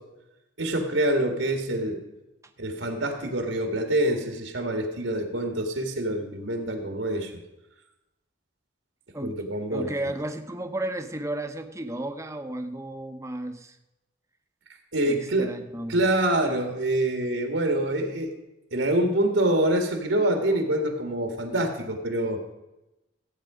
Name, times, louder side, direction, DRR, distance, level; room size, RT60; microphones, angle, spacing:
voice 1, 0.6-2.0 2.6-7.3 9.2-9.9 14.9-15.5 15.9-18.3 18.7-22.4, right 1 dB, 75° right, 4 dB, 1.9 m, -26 dB
voice 2, 9.7-13.8 15.1-16.1, right 1 dB, 15° right, 7 dB, 0.8 m, -33 dB
15.0 x 8.9 x 5.0 m, 0.96 s
head